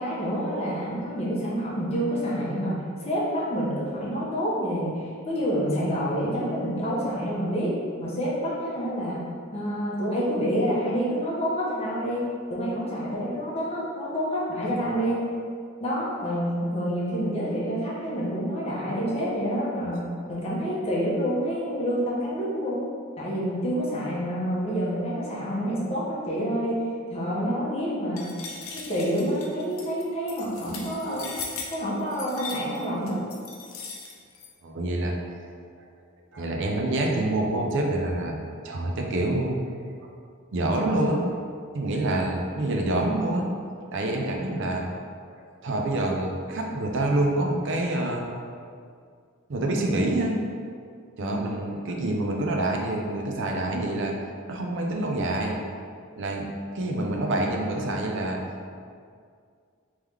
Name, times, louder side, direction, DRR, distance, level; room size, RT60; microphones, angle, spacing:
voice 1, 0.0-2.8 3.0-7.7 8.0-9.2 9.5-12.2 12.5-15.2 15.8-22.9 23.2-26.8 27.1-28.3 28.7-31.3 31.7-33.2 51.2-51.5, equal, 30° left, -6 dB, 0.9 m, -28 dB
sound 1, 28.2-34.5, left 5 dB, 80° left, 0.6 m, -39 dB
voice 2, 34.6-35.2 36.3-38.4 38.6-39.6 40.0-40.1 40.5-43.5 43.9-45.0 45.2-48.2 49.5-50.3 51.2-54.1 54.5-55.6 56.2-58.4, right 1 dB, 60° right, 0 dB, 0.5 m, -27 dB
3.5 x 3.1 x 3.3 m, 2.2 s
head